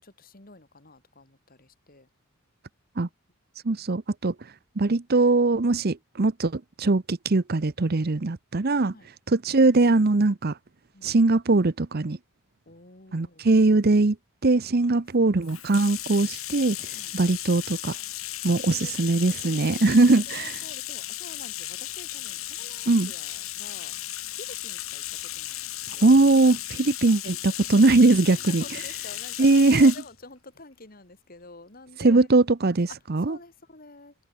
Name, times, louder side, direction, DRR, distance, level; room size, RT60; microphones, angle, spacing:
voice 1, 0.0-2.1 8.9-9.1 10.9-11.1 12.7-13.5 14.8-14.9 16.9-17.1 18.5-19.9 20.3-24.0 24.3-26.1 28.3-32.3 33.2-34.1, left 3 dB, 40° left, 2.8 m, -48 dB
voice 2, 3.6-4.3 4.8-8.9 9.3-10.5 11.0-12.2 13.1-14.2 14.4-16.8 17.1-17.9 18.4-20.6 22.9-23.1 26.0-28.6 29.4-29.9 32.0-33.4, right 3 dB, 45° right, 0.7 m, -21 dB
Bathtub (filling or washing), 15.4-30.1, left 15 dB, 70° left, 3.1 m, -35 dB
head